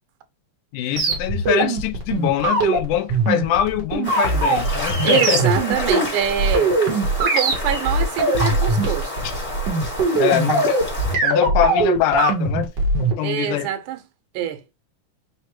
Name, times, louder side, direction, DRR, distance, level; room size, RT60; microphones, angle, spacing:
voice 1, 0.7-5.5 9.2-9.3 10.2-10.8 11.2-12.7 13.0-13.7, left 12 dB, 85° left, 2.1 m, -23 dB
sound 1, 1.0-13.1, right 3 dB, 65° right, 1.0 m, -21 dB
sound 2, 4.0-11.1, left 2 dB, 20° left, 1.0 m, -30 dB
voice 2, 5.0-6.7 7.2-9.1 13.2-14.0 14.3-14.6, right 10 dB, 85° right, 2.2 m, -24 dB
5.0 x 2.1 x 4.3 m
omnidirectional pair, 3.6 m